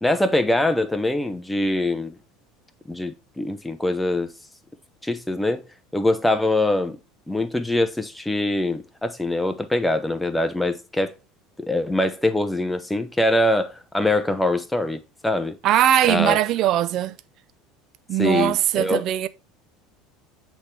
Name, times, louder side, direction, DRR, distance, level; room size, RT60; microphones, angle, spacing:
voice 1, 0.0-2.2 2.9-4.3 5.0-5.6 5.9-7.0 7.3-11.1 11.6-15.6 16.1-16.4 18.2-19.0, left 1 dB, 5° left, 0.7 m, -23 dB
voice 2, 15.6-17.2 18.1-19.3, right 12 dB, 45° right, 0.4 m, -20 dB
7.9 x 3.4 x 4.2 m
cardioid pair, 150°, 0 cm